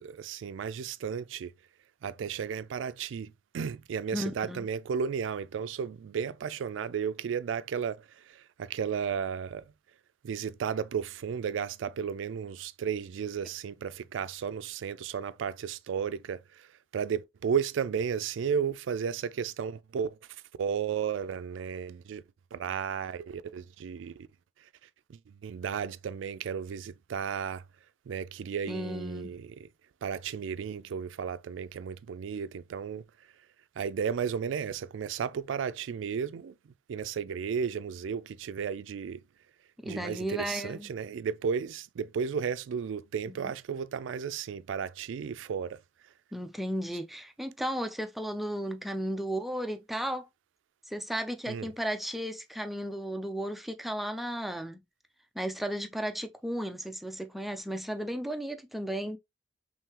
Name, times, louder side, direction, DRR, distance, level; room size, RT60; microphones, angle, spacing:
voice 1, 0.0-1.5 2.0-9.6 10.2-16.7 16.9-20.2 20.6-22.2 22.5-24.3 25.1-27.6 28.1-29.5 30.0-33.0 33.8-36.5 36.9-39.2 39.8-45.8 51.5-51.7, right 7 dB, 85° right, 0.3 m, -34 dB
voice 2, 4.1-4.7 28.7-29.3 39.8-40.9 43.3-43.5 46.3-50.3 50.9-54.8 55.4-59.2, equal, ahead, 0.4 m, -34 dB
3.7 x 3.2 x 2.8 m
head